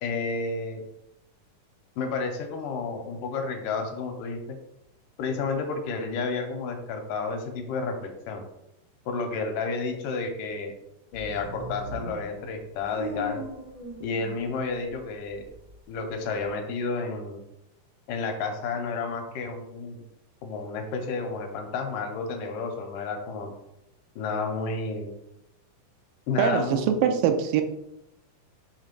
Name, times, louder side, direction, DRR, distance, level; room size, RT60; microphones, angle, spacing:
voice 1, 0.0-0.8 2.0-4.6 5.2-8.4 9.1-10.7 11.1-13.4 14.0-15.4 15.9-17.4 18.1-20.0 20.4-23.5 24.2-25.1 26.3-26.9, left 4 dB, 75° left, 4 dB, 2.3 m, -31 dB
sound 1, 11.1-14.9 15.3-16.5, right 1 dB, 70° right, 0.4 m, -39 dB
voice 2, 26.4-27.6, right 8 dB, 90° right, 7 dB, 2.3 m, -23 dB
5.9 x 3.3 x 5.2 m, 0.86 s
omnidirectional pair, 3.9 m